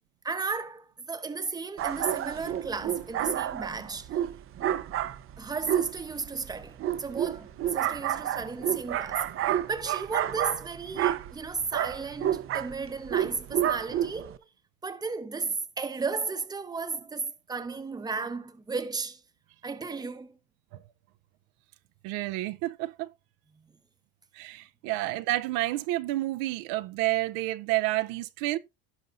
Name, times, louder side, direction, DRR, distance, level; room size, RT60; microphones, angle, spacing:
voice 1, 0.2-4.1 5.4-14.5 14.8-19.2 19.6-20.4 23.5-23.6, right 4 dB, 10° right, 0.9 m, -34 dB
sound 1, 1.8-14.4, right 11 dB, 40° right, 0.6 m, -30 dB
voice 2, 22.0-23.1 24.3-28.6, right 17 dB, 80° right, 0.7 m, -30 dB
16.5 x 5.4 x 2.5 m
cardioid pair, 135°, 35 cm